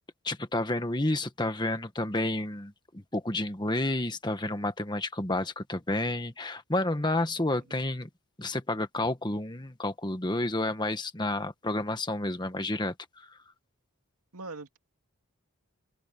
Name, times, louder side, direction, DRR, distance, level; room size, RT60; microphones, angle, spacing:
voice 1, 0.2-8.1 8.4-13.4, left 2 dB, 20° left, 1.4 m, -30 dB
voice 2, 7.5-7.9 14.3-14.8, right 3 dB, 85° right, 2.3 m, -43 dB
head